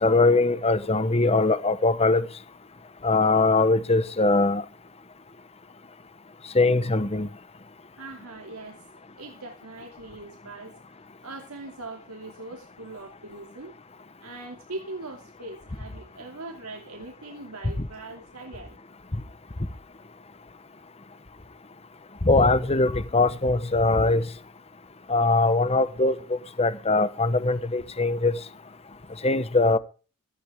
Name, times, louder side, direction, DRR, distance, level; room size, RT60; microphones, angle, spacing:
voice 1, 0.0-2.2 3.0-4.6 6.5-7.3 22.2-24.2 25.1-28.3 29.2-29.8, left 3 dB, 25° left, 1.0 m, -21 dB
voice 2, 8.0-8.8 9.2-13.7 14.2-18.8, right 2 dB, 80° right, 2.7 m, -41 dB
16.5 x 14.0 x 3.6 m
head